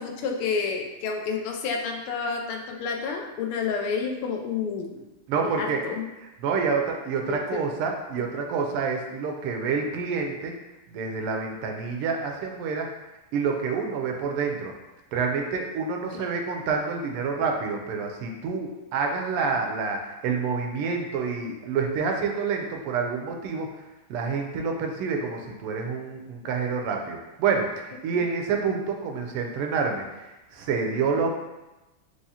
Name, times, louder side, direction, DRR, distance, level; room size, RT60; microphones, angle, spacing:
voice 1, 0.0-5.0 5.5-6.1 7.3-7.6 8.2-8.3 16.1-16.2, left 5 dB, 80° left, 2 dB, 1.5 m, -30 dB
voice 2, 5.3-5.8 6.4-10.5 10.9-12.9 13.3-14.7 15.1-23.7 24.1-31.4, right 5 dB, 85° right, 2 dB, 1.5 m, -28 dB
4.8 x 2.8 x 2.8 m, 1.0 s
omnidirectional pair, 2.4 m